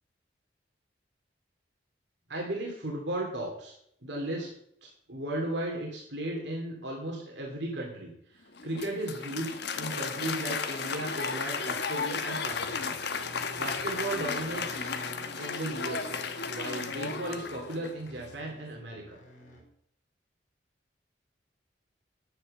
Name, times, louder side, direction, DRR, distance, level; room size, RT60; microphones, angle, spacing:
voice 1, 2.3-3.7 4.0-4.5 4.8-13.0 13.6-14.9 15.4-16.2 16.5-19.2, right 1 dB, 70° right, -1 dB, 2.8 m, -36 dB
Applause, 8.5-18.1, left 5 dB, 65° left, 1.2 m, -34 dB
sound 1, 12.5-19.6, equal, 45° left, 3.8 m, -50 dB
11.0 x 9.8 x 6.6 m, 0.72 s
head